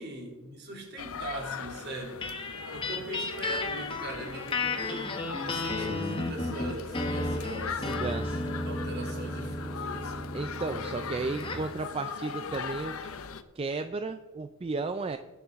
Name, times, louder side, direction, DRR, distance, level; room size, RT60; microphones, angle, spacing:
voice 1, 0.0-2.2 2.7-7.9 8.6-10.3, right 1 dB, 50° right, -1 dB, 3.0 m, -41 dB
sound 1, 1.0-13.4, left 6 dB, 75° left, 0.7 m, -40 dB
sound 2, 2.2-11.7, left 2 dB, 25° left, 1.1 m, -34 dB
voice 2, 7.8-8.4 10.3-13.1 13.6-15.2, right 3 dB, 25° right, 9 dB, 0.4 m, -34 dB
20.0 x 6.8 x 3.6 m, 1.2 s
head